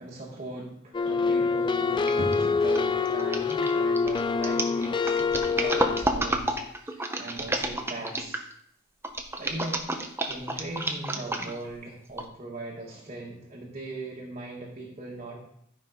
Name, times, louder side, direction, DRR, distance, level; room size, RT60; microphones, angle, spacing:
voice 1, 0.0-8.4 9.4-9.8 10.3-15.5, right 2 dB, 35° right, -3 dB, 1.7 m, -39 dB
sound 1, 0.9-6.0, left 4 dB, 25° left, 0.3 m, -26 dB
sound 2, 2.1-2.3 2.7-8.5 9.0-11.7 12.2-12.3, right 1 dB, 10° right, 0.9 m, -30 dB
12.0 x 5.5 x 5.1 m, 0.68 s
head